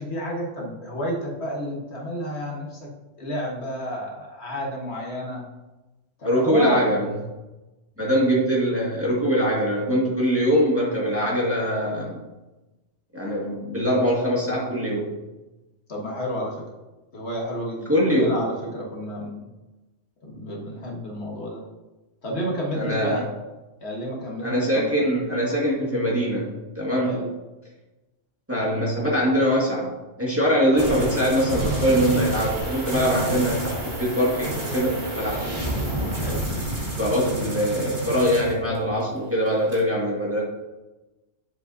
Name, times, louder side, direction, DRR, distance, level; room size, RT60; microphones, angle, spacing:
voice 1, 0.0-2.9 3.2-5.4 6.2-6.9 15.9-16.6 17.1-19.5 20.2-21.6 22.2-23.3 23.8-25.0 27.0-27.3 36.2-36.5, equal, 60° left, -2 dB, 1.5 m, -31 dB
voice 2, 6.2-7.1 8.0-12.2 13.1-15.1 17.9-18.4 22.7-23.2 24.4-27.2 28.5-29.9 30.2-35.4 37.0-40.4, equal, 10° right, -6 dB, 1.8 m, -22 dB
sound 1, 30.8-39.0 39.3-39.8, right 1 dB, 40° right, 2.0 m, -29 dB
10.0 x 5.0 x 2.6 m, 1.1 s
omnidirectional pair, 1.3 m